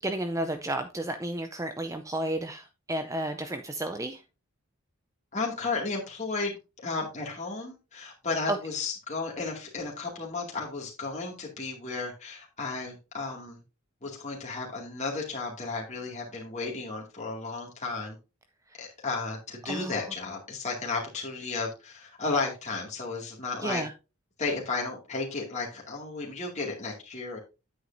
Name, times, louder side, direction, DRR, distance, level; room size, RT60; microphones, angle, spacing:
voice 1, 0.0-4.2 8.5-8.6 19.7-20.0 23.6-23.9, right 1 dB, 15° right, 7 dB, 0.5 m, -32 dB
voice 2, 5.3-13.6 14.0-18.2 18.8-23.8 24.4-27.4, left 3 dB, 30° left, -2 dB, 2.2 m, -33 dB
9.6 x 8.0 x 2.6 m, 0.28 s
head